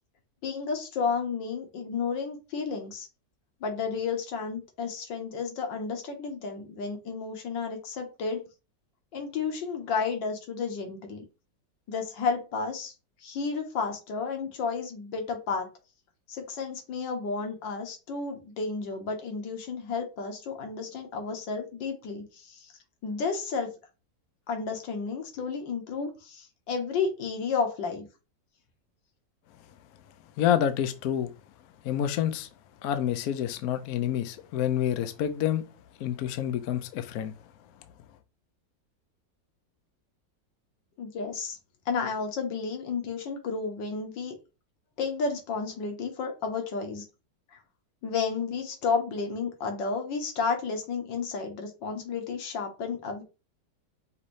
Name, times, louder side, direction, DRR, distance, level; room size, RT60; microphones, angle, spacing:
voice 1, 0.4-3.1 3.6-8.4 9.1-11.2 11.9-12.9 13.2-15.7 16.3-22.7 23.0-23.7 24.5-28.1 41.0-41.6 41.9-44.3 45.0-47.1 47.5-47.6 48.0-53.2, left 5 dB, 85° left, 1.7 m, -32 dB
voice 2, 30.4-31.3 31.8-32.5 32.8-35.6 36.0-37.4, left 10 dB, 70° left, 0.9 m, -28 dB
5.6 x 2.6 x 3.1 m
omnidirectional pair, 1.9 m